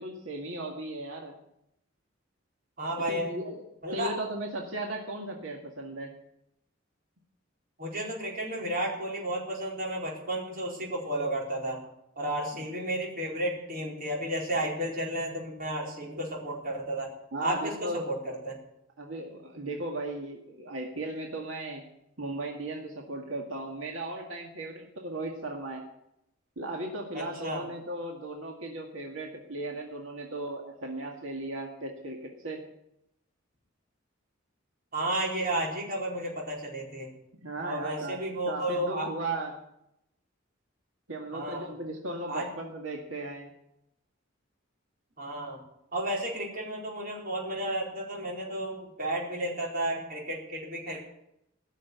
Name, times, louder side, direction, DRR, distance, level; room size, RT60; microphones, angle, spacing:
voice 1, 0.0-1.4 3.1-3.6 3.9-6.1 17.3-18.1 19.0-21.8 22.2-25.8 26.6-32.6 37.4-38.2 38.5-39.5 41.1-43.5, right 2 dB, 90° right, 1 dB, 2.0 m, -36 dB
voice 2, 2.8-3.3 3.8-4.1 7.8-11.8 12.2-17.1 17.4-18.6 27.1-27.6 34.9-37.1 37.6-39.1 41.3-41.7 42.3-42.5 45.2-45.6 45.9-51.0, right 1 dB, 45° right, -2 dB, 4.5 m, -32 dB
17.5 x 6.7 x 9.5 m, 0.81 s
head